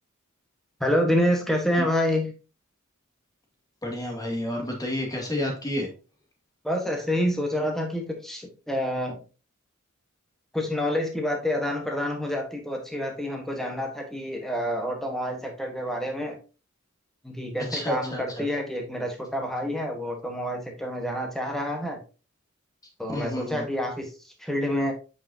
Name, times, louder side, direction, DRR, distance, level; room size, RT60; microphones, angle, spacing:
voice 1, 0.8-2.3 6.6-9.2 10.5-16.4 17.2-22.0 23.0-24.1 24.4-24.9, equal, ahead, 2 dB, 1.3 m, -28 dB
voice 2, 3.8-5.9 17.6-18.5 23.1-23.7, left 1 dB, 20° left, 1 dB, 2.1 m, -30 dB
8.1 x 5.6 x 2.8 m, 0.33 s
head